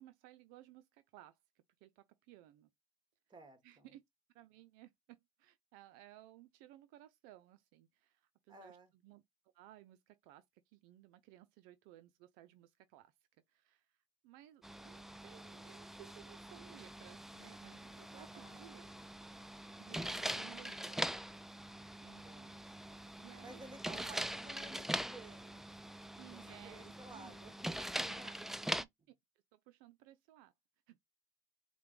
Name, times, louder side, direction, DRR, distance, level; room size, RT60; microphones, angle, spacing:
voice 1, 0.0-1.4 1.8-2.7 3.6-4.0 4.3-8.8 9.0-9.2 9.5-13.1 13.5-18.9 19.8-21.0 22.0-22.6 23.2-24.1 26.2-27.4 28.0-28.4 28.6-28.9 29.5-30.5 30.9-31.0, right 14 dB, 85° right, 0.4 m, -59 dB
voice 2, 3.3-3.9 8.5-8.9 18.1-18.9 22.2-22.8 23.4-25.7 26.3-28.6, right 3 dB, 30° right, 1.6 m, -55 dB
sound 1, 14.6-28.8, right 1 dB, ahead, 0.3 m, -43 dB
4.9 x 2.2 x 3.1 m
supercardioid pair, 85°, 15 cm